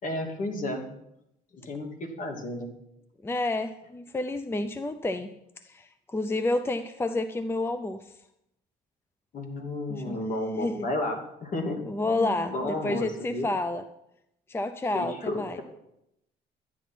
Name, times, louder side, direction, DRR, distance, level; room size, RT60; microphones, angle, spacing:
voice 1, 0.0-0.8 1.5-2.7 9.3-13.5 14.9-15.6, left 1 dB, 50° left, 3 dB, 2.6 m, -32 dB
voice 2, 3.2-5.3 5.6-8.2 9.9-10.2 10.6-10.9 11.9-13.8 14.5-15.6, left 2 dB, 15° left, 10 dB, 0.6 m, -30 dB
12.0 x 9.2 x 6.0 m, 0.82 s
cardioid pair, 110°, 17 cm